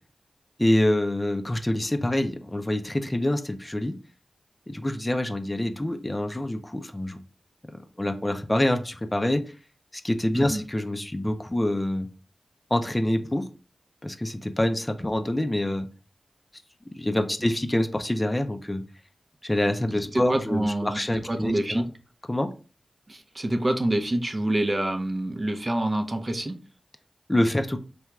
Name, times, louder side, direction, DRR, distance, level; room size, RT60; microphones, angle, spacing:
voice 1, 0.6-4.0 4.7-7.2 7.7-9.4 10.0-12.1 12.7-13.4 14.0-15.9 17.0-18.8 19.4-21.8 22.3-22.5 27.3-27.8, left 1 dB, 20° left, 8 dB, 0.4 m, -26 dB
voice 2, 20.1-21.9 23.1-26.6, right 1 dB, 40° right, 6 dB, 0.5 m, -26 dB
3.3 x 2.3 x 3.0 m, 0.35 s
cardioid pair, 40°, 0 cm